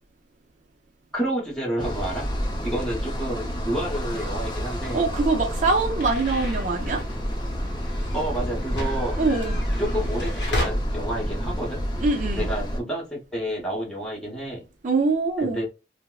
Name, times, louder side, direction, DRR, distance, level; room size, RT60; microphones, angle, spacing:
voice 1, 1.1-2.3 2.6-5.1 8.1-9.2 9.8-11.9 12.4-14.6 15.4-15.6, right 1 dB, 5° left, 1.0 m, -29 dB
sound 1, 1.8-12.8, equal, 25° left, 0.5 m, -29 dB
sound 2, 4.8-10.7, left 1 dB, 75° left, 0.8 m, -35 dB
voice 2, 4.9-7.0 9.2-9.6 12.0-12.5 14.8-15.6, right 3 dB, 40° right, 0.5 m, -23 dB
3.4 x 2.0 x 2.3 m
head